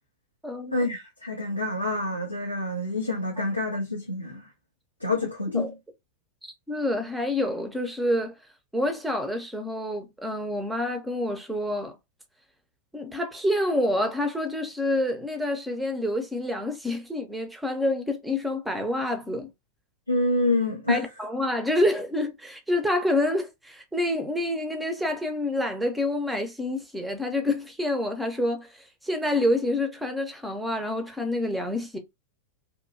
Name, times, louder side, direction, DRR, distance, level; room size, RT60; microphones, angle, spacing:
voice 1, 0.7-4.5 5.0-5.7 20.1-21.0, left 2 dB, 90° left, 0.6 m, -27 dB
voice 2, 6.4-8.3 8.7-12.0 12.9-19.5 20.9-28.7 29.0-32.0, left 1 dB, 5° right, 0.6 m, -27 dB
2.6 x 2.2 x 2.6 m
figure-of-eight pair, 90°, 0 cm